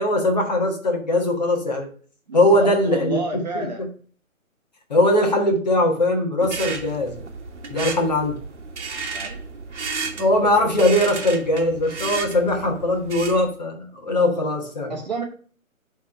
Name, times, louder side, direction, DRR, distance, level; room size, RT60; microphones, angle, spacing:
voice 1, 0.0-1.9 2.3-3.2 3.5-3.7 4.9-7.2 7.7-8.4 10.2-14.9, left 1 dB, 30° left, 0 dB, 1.4 m, -20 dB
voice 2, 2.3-3.8 9.1-9.4 10.0-10.3 14.9-15.2, right 2 dB, 30° right, 1 dB, 1.3 m, -31 dB
sound 1, 6.4-13.5, right 4 dB, 55° right, 1.4 m, -33 dB
9.4 x 3.6 x 5.4 m, 0.44 s
hypercardioid pair, 170°, 42 cm